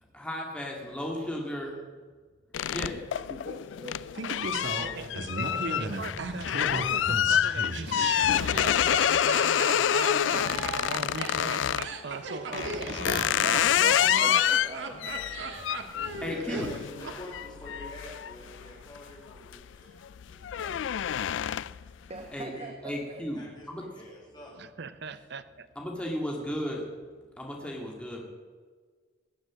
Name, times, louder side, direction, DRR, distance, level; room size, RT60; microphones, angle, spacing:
voice 1, 0.1-1.7 2.7-3.0 13.2-13.3 15.7-16.7 22.0-22.5 22.8-23.8 25.8-26.9 27.4-28.2, equal, 5° left, -1 dB, 2.0 m, -35 dB
sound 1, 2.5-11.9 12.5-19.0 19.4-19.7 20.1-21.9, left 10 dB, 75° left, 0.3 m, -27 dB
voice 2, 2.9-5.1 13.1-13.9 14.2-15.9 22.1-23.2, right 2 dB, 35° right, 4 dB, 1.0 m, -45 dB
Laughter, 4.1-17.2 17.4-17.5, right 3 dB, 90° right, 1.5 m, -36 dB
voice 3, 4.8-14.4 24.6-25.7, right 4 dB, 60° right, 12 dB, 0.7 m, -41 dB
voice 4, 16.2-21.5 22.1-22.2 22.5-22.7 23.3-24.5 24.8-24.9, left 1 dB, 25° left, -4 dB, 4.6 m, -47 dB
19.0 x 7.2 x 7.5 m, 1.5 s
head